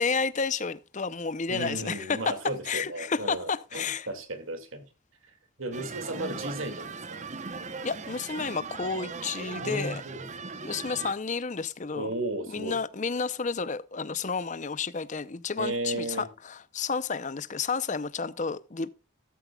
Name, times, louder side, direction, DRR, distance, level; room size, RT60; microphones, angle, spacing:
voice 1, 0.0-2.3 2.7-4.1 6.1-6.4 7.8-10.0 10.6-12.1 12.5-18.9, left 5 dB, 35° left, 0.6 m, -31 dB
voice 2, 1.5-4.8 5.6-7.3 9.6-10.3 11.9-12.8 15.6-16.3, right 2 dB, 85° right, 2.3 m, -34 dB
sound 1, 5.7-11.1, right 4 dB, 35° right, 0.9 m, -39 dB
13.0 x 13.0 x 2.3 m
head